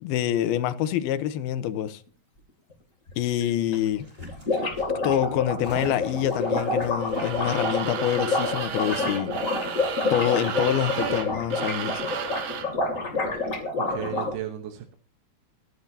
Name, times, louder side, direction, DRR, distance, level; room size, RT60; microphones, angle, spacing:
voice 1, 0.0-2.0 3.2-4.1 5.0-9.3 10.1-12.1, left 11 dB, 85° left, 2.8 m, -26 dB
sound 1, 3.1-3.2 3.4-3.5 3.7-3.8 4.1-14.3, left 3 dB, 25° left, 2.6 m, -28 dB
sound 2, 3.6-8.3 8.6-8.7, left 1 dB, 15° right, 5.9 m, -47 dB
sound 3, 7.0-12.8, right 7 dB, 70° right, 3.3 m, -33 dB
voice 2, 13.3-14.9, right 11 dB, 90° right, 3.1 m, -36 dB
25.0 x 9.9 x 2.8 m
omnidirectional pair, 4.3 m